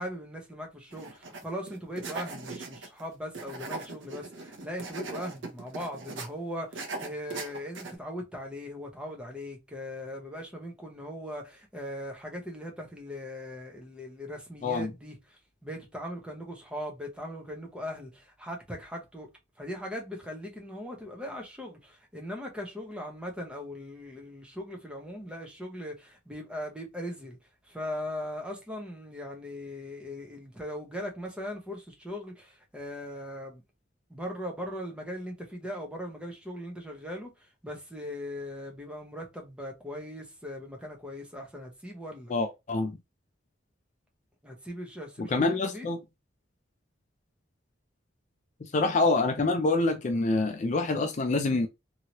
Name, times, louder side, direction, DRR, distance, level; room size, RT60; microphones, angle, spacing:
voice 1, 0.0-19.3 19.6-27.4 27.7-33.6 34.1-42.3 44.4-45.9, equal, 5° right, 0.8 m, -39 dB
sound 1, 0.9-1.4 1.7-3.0 3.3-6.3 6.7-8.0, right 3 dB, 65° right, 0.7 m, -39 dB
voice 2, 42.3-43.0 45.2-46.0 48.6-51.7, left 3 dB, 35° left, 0.4 m, -26 dB
2.9 x 2.8 x 2.8 m
head